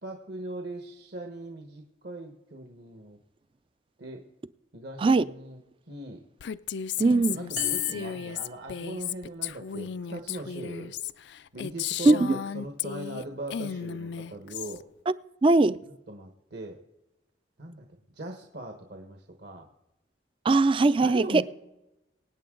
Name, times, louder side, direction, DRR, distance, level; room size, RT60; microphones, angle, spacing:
voice 1, 0.0-3.2 4.0-4.2 4.7-5.6 5.9-6.2 7.3-10.9 11.5-14.8 16.1-16.8 17.6-19.7 21.0-21.4, right 2 dB, 60° right, 1.3 m, -39 dB
Female speech woman speaking, 6.4-13.2 13.5-14.8, left 10 dB, 65° left, 0.4 m, -34 dB
voice 2, 7.0-7.4 12.1-12.2 15.4-15.8 20.4-21.4, right 3 dB, 30° right, 0.4 m, -20 dB
sound 1, 7.6-9.3, right 4 dB, 85° right, 2.2 m, -43 dB
24.0 x 9.2 x 3.8 m
head